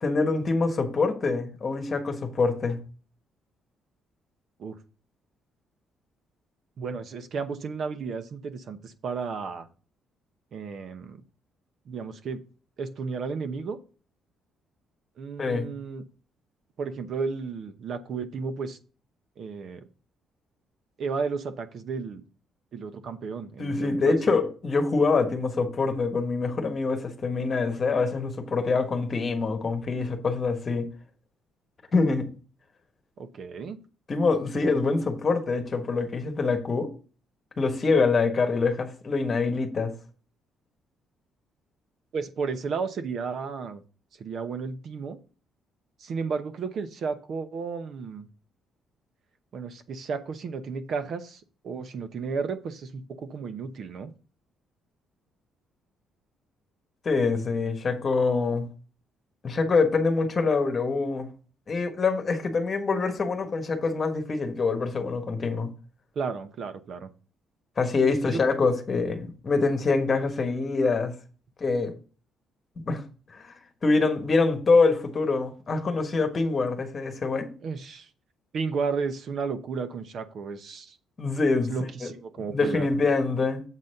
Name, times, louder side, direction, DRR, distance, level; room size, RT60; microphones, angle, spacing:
voice 1, 0.0-2.8 15.4-15.7 23.6-30.9 31.9-32.3 34.1-36.9 37.6-39.9 57.0-58.7 59.4-61.3 61.7-65.7 67.8-71.1 71.6-71.9 72.8-73.0 73.3-73.5 73.8-77.5 81.2-81.7 82.5-83.6, left 4 dB, 25° left, 1.4 m, -25 dB
voice 2, 6.8-9.7 10.5-11.2 11.9-12.4 12.8-13.8 15.2-16.0 16.8-18.8 19.4-19.8 21.0-22.2 22.7-24.4 33.2-33.8 34.8-34.9 42.1-43.8 44.2-45.2 46.0-48.3 49.5-54.1 66.1-67.1 68.1-68.4 77.6-78.1 78.5-81.0 81.7-82.9, right 5 dB, 45° right, 0.8 m, -33 dB
7.4 x 4.0 x 6.6 m
cardioid pair, 160°, 0 cm